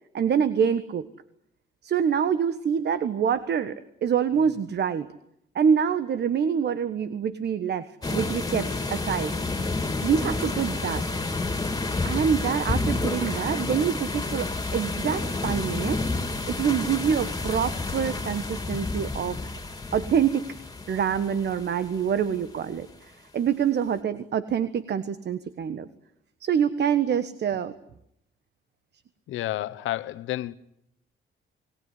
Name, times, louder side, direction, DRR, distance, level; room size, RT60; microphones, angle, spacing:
voice 1, 0.1-1.1 1.8-5.1 5.5-9.3 10.0-11.0 12.0-16.0 16.5-19.4 19.9-20.6 20.9-25.9 26.4-27.7, right 7 dB, 60° right, 1.4 m, -26 dB
sound 1, 8.0-22.6, left 3 dB, 20° left, 3.6 m, -30 dB
sound 2, 10.1-10.9 12.5-13.6 14.8-14.9 15.2-15.3, right 5 dB, 90° right, 7.5 m, -50 dB
voice 2, 29.3-30.5, left 14 dB, 85° left, 1.2 m, -30 dB
29.0 x 19.5 x 9.9 m
cardioid pair, 90°, 20 cm